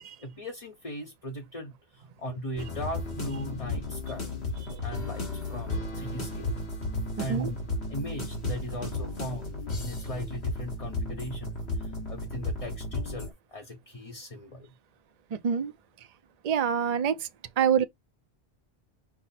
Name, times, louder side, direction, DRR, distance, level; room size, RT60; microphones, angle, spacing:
voice 1, 0.2-4.4 4.8-6.5 7.2-7.6 7.9-14.8, equal, 35° left, 0.9 m, -39 dB
sound 1, 2.6-13.3, left 2 dB, 70° left, 1.8 m, -34 dB
voice 2, 15.3-15.7 16.4-17.3 17.6-17.8, right 8 dB, 50° right, 0.5 m, -25 dB
5.9 x 2.1 x 4.1 m
omnidirectional pair, 1.1 m